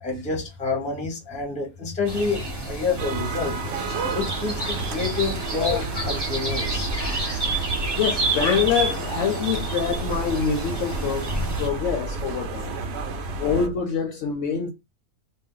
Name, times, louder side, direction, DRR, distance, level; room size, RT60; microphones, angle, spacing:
voice 1, 0.0-3.6 4.1-6.9, left 4 dB, 5° left, 0.5 m, -28 dB
sound 1, 2.0-11.7, right 2 dB, 20° right, 0.8 m, -30 dB
sound 2, 3.0-13.7, right 3 dB, 65° right, 0.6 m, -31 dB
voice 2, 7.0-7.6 7.9-11.3 11.6-12.8 13.4-14.7, left 6 dB, 70° left, 0.8 m, -26 dB
2.6 x 2.1 x 3.7 m
omnidirectional pair, 1.5 m